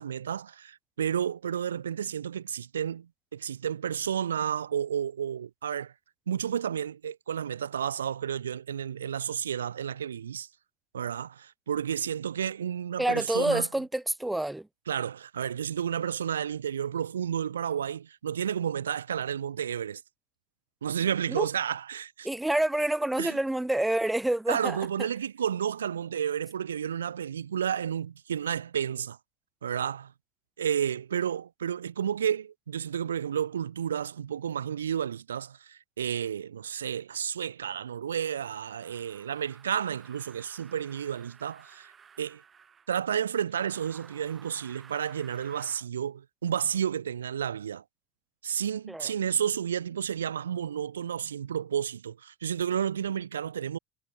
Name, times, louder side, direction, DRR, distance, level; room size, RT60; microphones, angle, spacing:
voice 1, 0.0-5.9 6.3-10.5 10.9-13.7 14.9-20.0 20.8-22.3 23.2-23.4 24.5-29.2 29.6-30.1 30.6-41.9 42.2-42.4 42.9-47.8 48.4-53.8, right 8 dB, 85° right, 0.3 m, -31 dB
voice 2, 13.0-14.7 21.3-21.5 22.2-25.1 48.9-49.1, right 1 dB, 5° right, 0.6 m, -28 dB
sound 1, 38.3-42.9 43.5-45.9, right 7 dB, 35° right, 4.3 m, -54 dB
hypercardioid pair, 75°, 0 cm